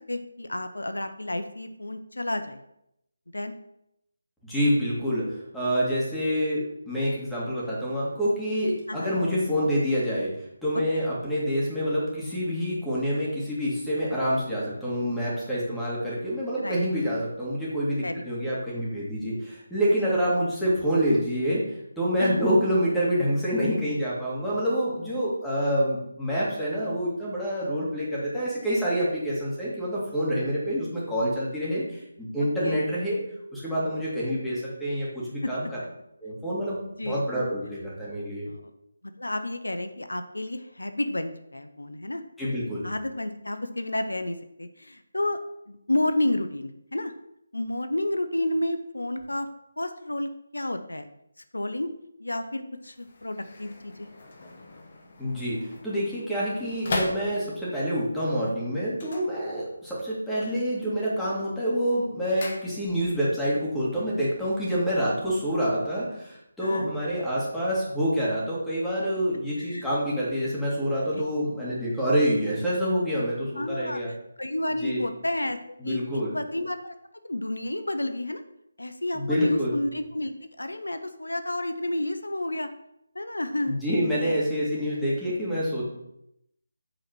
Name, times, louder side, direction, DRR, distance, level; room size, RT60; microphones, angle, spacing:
voice 1, 0.1-2.6 3.3-3.5 8.9-9.1 16.6-16.8 18.0-18.2 22.2-22.4 32.6-32.8 35.4-35.5 37.0-37.2 38.5-38.6 39.2-42.2 42.8-45.4 45.7-47.1 47.5-49.5 49.8-51.1 51.5-51.9 52.2-54.1 66.6-66.9 69.6-69.9 71.1-71.2 73.6-74.0 74.4-76.0 76.3-76.9 77.2-78.4 78.8-82.7 83.1-83.8 84.2-84.4, left 1 dB, 85° left, 9 dB, 0.6 m, -30 dB
voice 2, 4.4-33.2 33.5-35.8 36.2-38.5 42.4-42.8 55.2-74.1 74.8-75.0 75.8-76.3 79.1-79.7 83.7-85.9, equal, 5° left, -8 dB, 2.1 m, -27 dB
sound 1, 52.8-57.8 58.9-60.0 60.3-60.8 61.2-63.2 63.5-63.6, left 2 dB, 45° left, 1.2 m, -38 dB
7.8 x 4.1 x 4.6 m, 0.80 s
figure-of-eight pair, 155°, 0 cm